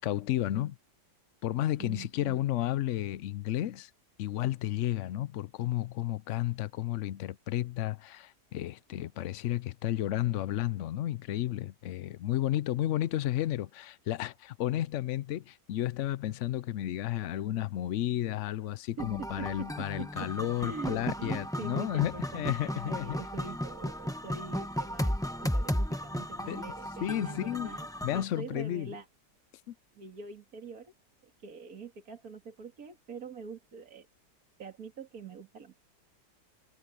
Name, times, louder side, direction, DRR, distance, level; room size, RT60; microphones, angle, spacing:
voice 1, 0.0-0.8 1.4-3.9 4.2-23.2 26.5-26.6 27.0-27.7 28.0-29.0 29.7-29.8, left 13 dB, 90° left, 0.6 m, -32 dB
voice 2, 1.8-2.4 19.0-27.9 28.1-29.1 29.9-30.9 31.2-34.1 34.6-35.7, right 6 dB, 55° right, 2.5 m, -44 dB
sound 1, 19.0-28.2, equal, 5° left, 0.6 m, -35 dB
omnidirectional pair, 1.9 m